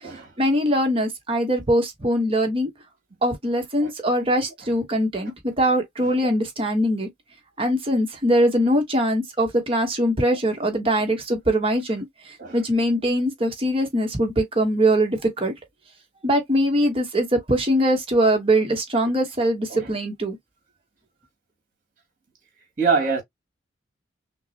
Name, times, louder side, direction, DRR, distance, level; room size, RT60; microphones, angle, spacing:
voice 1, 0.4-2.7 3.2-7.1 7.6-15.5 16.2-20.4, equal, 30° right, 1.1 m, -22 dB
voice 2, 22.8-23.2, right 4 dB, 45° right, 1.9 m, -23 dB
5.7 x 2.0 x 2.8 m
head